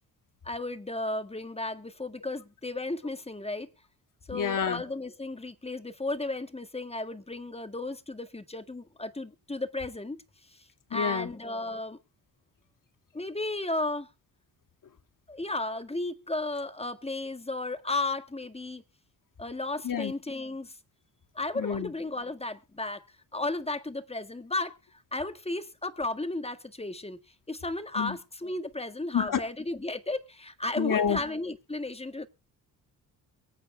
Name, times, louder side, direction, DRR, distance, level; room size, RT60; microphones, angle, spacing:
voice 1, 0.4-3.7 4.3-10.2 10.5-10.6 10.9-12.0 13.1-14.1 15.3-18.8 19.4-20.8 21.4-23.0 23.3-27.2 27.5-32.3, left 2 dB, 15° left, 1.7 m, -34 dB
voice 2, 4.3-4.8 10.9-11.3 19.8-20.1 21.6-21.9 28.0-28.2 29.1-29.4 30.8-31.2, left 7 dB, 50° left, 2.4 m, -28 dB
23.5 x 8.9 x 2.3 m
supercardioid pair, 60°, 39 cm